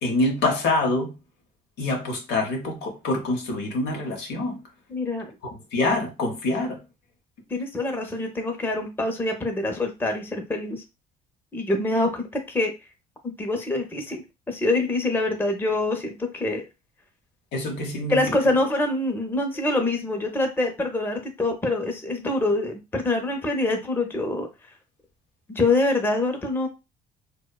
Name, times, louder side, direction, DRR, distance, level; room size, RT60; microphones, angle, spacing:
voice 1, 0.0-1.1 1.8-4.6 5.4-6.8 17.5-18.3, left 2 dB, 85° left, 0.8 m, -25 dB
voice 2, 4.9-5.3 7.5-10.8 11.5-12.7 13.4-16.6 18.1-24.5 25.5-26.7, left 2 dB, 15° left, 0.6 m, -25 dB
2.7 x 2.1 x 2.2 m
cardioid pair, 110°, 17 cm